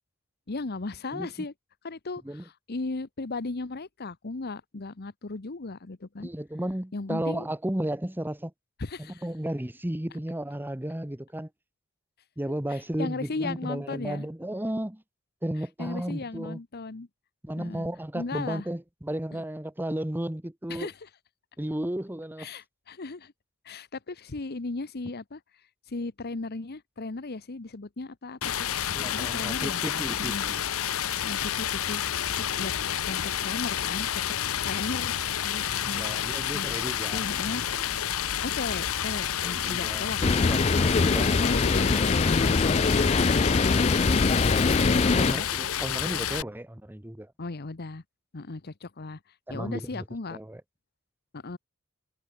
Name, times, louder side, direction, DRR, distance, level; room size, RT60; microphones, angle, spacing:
voice 1, 0.5-1.5 1.8-6.3 6.9-7.5 8.8-9.3 12.7-14.3 15.8-17.1 17.6-17.9 18.1-18.7 19.3-19.4 20.7-21.1 22.4-23.3 23.6-25.4 25.9-28.5 29.0-29.8 30.2-30.4 31.2-32.7 33.0-34.1 34.6-36.7 37.1-37.6 38.4-40.5 41.2-43.1 43.4-45.5 47.4-48.0 48.3-49.2 49.5-50.4 51.3-51.6, left 3 dB, 50° left, 0.9 m, -36 dB
voice 2, 6.2-8.5 9.2-11.5 12.4-15.0 15.4-16.6 17.4-20.9 21.6-22.5 28.9-30.6 35.8-37.2 39.4-41.3 41.8-42.3 45.2-47.3 49.5-50.0 50.3-50.6, right 1 dB, 10° right, 1.0 m, -34 dB
Stream, 28.4-46.4, left 10 dB, 75° left, 0.8 m, -30 dB
sound 1, 40.2-45.3, left 3 dB, 30° left, 0.5 m, -23 dB
head